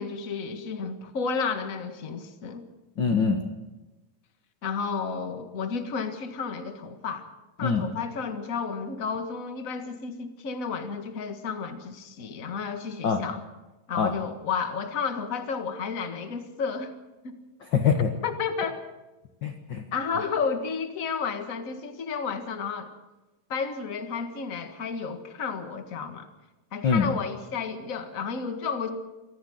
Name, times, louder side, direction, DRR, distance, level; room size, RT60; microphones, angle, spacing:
voice 1, 0.0-2.6 4.6-7.3 7.6-13.4 13.9-16.9 17.2-17.4 18.2-18.7 19.9-22.9 23.5-26.3 26.7-28.9, left 5 dB, 35° left, 7 dB, 1.3 m, -32 dB
voice 2, 3.0-3.4 7.6-7.9 13.0-13.2 13.9-14.1 17.7-18.1 19.4-19.8 26.8-27.1, left 6 dB, 55° left, 4 dB, 1.2 m, -23 dB
24.5 x 14.5 x 7.9 m, 1.1 s
omnidirectional pair, 4.0 m